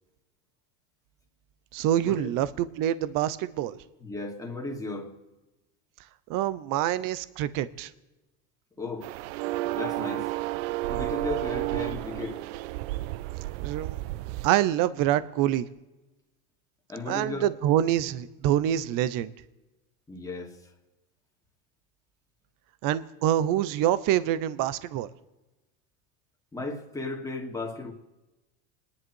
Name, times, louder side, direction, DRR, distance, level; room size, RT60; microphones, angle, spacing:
voice 1, 1.7-3.8 6.3-7.9 13.6-14.0 14.4-15.7 17.1-19.3 22.8-25.1, right 12 dB, 55° right, 0.9 m, -26 dB
voice 2, 4.0-5.1 8.8-9.1 9.7-10.3 10.9-12.4 16.9-17.5 20.1-20.7 26.5-27.9, left 3 dB, 10° left, 2.6 m, -35 dB
sound 1, 9.0-14.5, right 18 dB, 80° right, 0.5 m, -32 dB
28.5 x 11.0 x 4.7 m
supercardioid pair, 130°, 39 cm